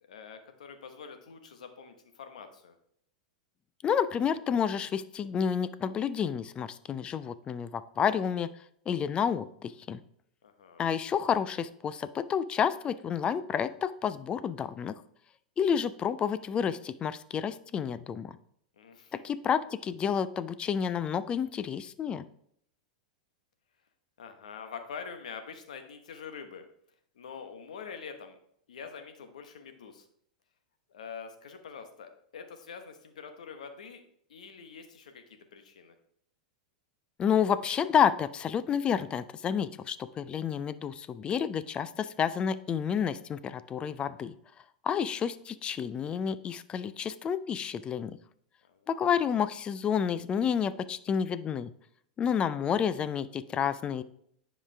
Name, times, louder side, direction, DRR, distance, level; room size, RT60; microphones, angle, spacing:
voice 1, 0.1-2.7 10.4-10.9 18.8-19.2 24.2-26.6 27.1-28.4 28.7-30.1 30.9-34.0 34.3-35.9 48.7-48.9, left 6 dB, 75° left, 7 dB, 1.2 m, -45 dB
voice 2, 3.8-8.5 8.9-10.0 10.8-14.9 15.6-18.3 19.2-22.2 37.2-44.4 44.8-48.2 48.9-51.7 52.2-54.0, left 7 dB, 25° left, 15 dB, 0.4 m, -30 dB
9.9 x 5.0 x 3.4 m, 0.69 s
hypercardioid pair, 110°, 4 cm